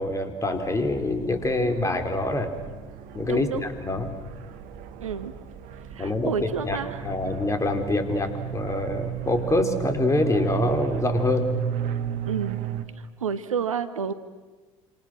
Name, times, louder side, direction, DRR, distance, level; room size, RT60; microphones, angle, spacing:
voice 1, 0.0-2.5 3.1-4.1 6.0-11.5, left 2 dB, 20° left, 6 dB, 3.9 m, -25 dB
sound 1, 0.6-12.9, right 9 dB, 55° right, 2.0 m, -34 dB
voice 2, 3.3-3.6 5.0-5.3 6.0-6.9 12.3-12.6 13.2-14.1, right 7 dB, 80° right, 13 dB, 1.1 m, -29 dB
28.5 x 27.0 x 6.2 m, 1.3 s
figure-of-eight pair, 65°, 17 cm